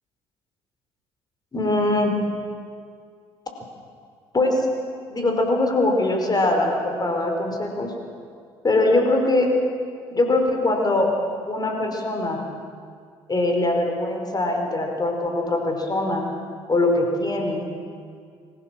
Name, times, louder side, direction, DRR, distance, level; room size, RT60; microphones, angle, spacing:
voice 1, 1.5-2.2 4.3-4.7 5.1-7.9 8.6-9.5 10.1-11.1 11.5-12.4 13.3-16.2 16.7-17.7, left 2 dB, 30° left, 2 dB, 5.0 m, -22 dB
25.0 x 16.0 x 7.8 m, 2.2 s
hypercardioid pair, 60°, 13 cm